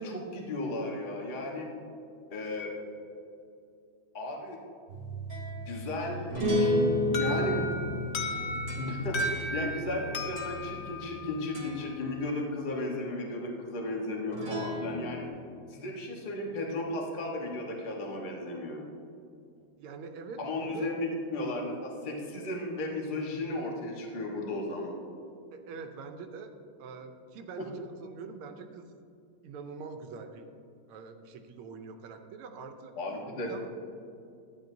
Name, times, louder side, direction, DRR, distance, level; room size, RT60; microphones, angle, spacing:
voice 1, 0.0-1.7 2.3-2.7 4.1-4.6 5.5-6.7 7.1-7.6 8.8-15.2 15.7-18.8 20.4-24.9 27.6-27.7 33.0-33.7, left 2 dB, 30° left, -1 dB, 1.0 m, -35 dB
sound 1, 4.9-11.2 11.5-11.9 14.3-15.3, left 1 dB, 45° right, 1.7 m, -32 dB
Alarm, 7.1-11.9, left 1 dB, 75° left, 0.6 m, -36 dB
voice 2, 19.8-20.4 20.7-21.0 25.5-26.5 26.8-27.7 28.0-28.9 29.4-30.5 30.9-32.9 33.5-33.7, right 5 dB, 90° right, 6 dB, 1.6 m, -44 dB
12.0 x 9.4 x 2.7 m, 2.5 s
omnidirectional pair, 2.3 m